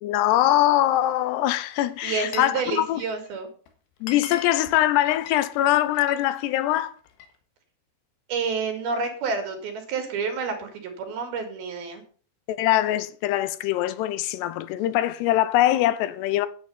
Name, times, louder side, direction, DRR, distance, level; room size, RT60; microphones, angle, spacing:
voice 1, 0.0-3.0 4.0-6.9 12.5-16.5, left 14 dB, 90° left, 2.9 m, -22 dB
Glass, 1.6-2.6 2.9-3.3 3.7-3.8 4.0-6.2 6.6-7.4, left 8 dB, 70° left, 3.2 m, -41 dB
voice 2, 2.0-3.5 8.3-12.0, right 5 dB, 65° right, 4.1 m, -29 dB
9.9 x 9.4 x 5.5 m
omnidirectional pair, 4.7 m